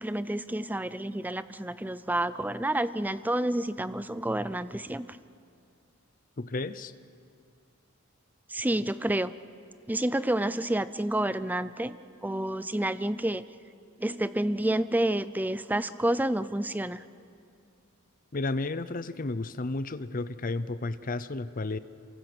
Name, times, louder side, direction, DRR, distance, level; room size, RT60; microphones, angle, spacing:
voice 1, 0.0-5.2 8.5-9.3 9.9-13.4 14.0-17.0, right 1 dB, 10° right, 14 dB, 0.5 m, -29 dB
voice 2, 6.4-6.9 18.3-21.8, left 2 dB, 40° left, 14 dB, 0.7 m, -32 dB
27.5 x 24.0 x 6.2 m, 2.5 s
head